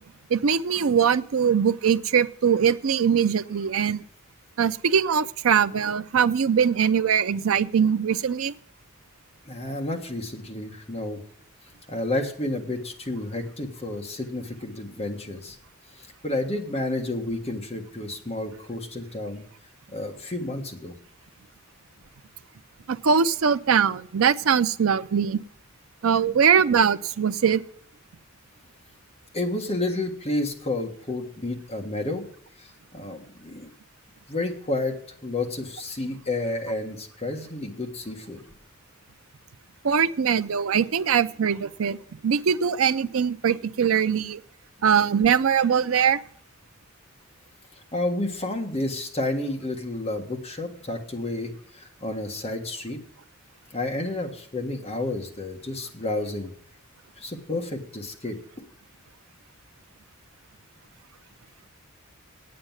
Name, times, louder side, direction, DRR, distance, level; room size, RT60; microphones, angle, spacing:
voice 1, 0.3-4.0 4.6-8.5 22.9-25.4 26.0-27.6 39.8-42.0 42.2-44.4 44.8-46.2, right 7 dB, 70° right, 13 dB, 0.5 m, -22 dB
voice 2, 9.4-11.2 11.9-15.6 16.0-19.4 19.9-20.9 26.2-26.3 29.3-32.2 32.6-33.7 34.3-35.0 35.2-38.4 47.9-53.0 53.7-56.5 57.2-58.4, left 2 dB, 30° left, 2 dB, 1.6 m, -30 dB
8.8 x 7.7 x 9.0 m, 0.63 s
head